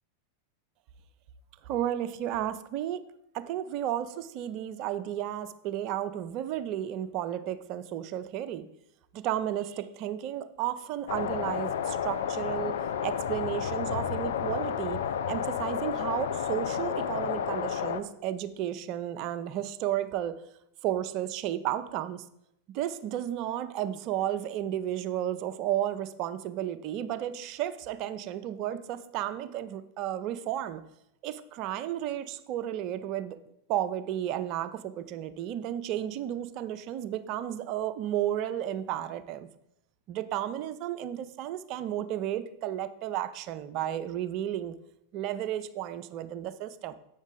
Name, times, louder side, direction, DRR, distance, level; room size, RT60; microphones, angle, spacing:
voice 1, 1.6-3.0 3.3-8.7 9.1-12.8 13.0-15.0 15.3-20.4 20.8-22.2 22.7-30.8 31.2-33.4 33.7-39.5 40.1-44.7 45.1-46.9, right 11 dB, 45° right, 12 dB, 0.5 m, -33 dB
sound 1, 11.1-18.0, left 8 dB, 65° left, 0.4 m, -31 dB
8.1 x 6.2 x 3.9 m, 0.80 s
figure-of-eight pair, 90°, 0 cm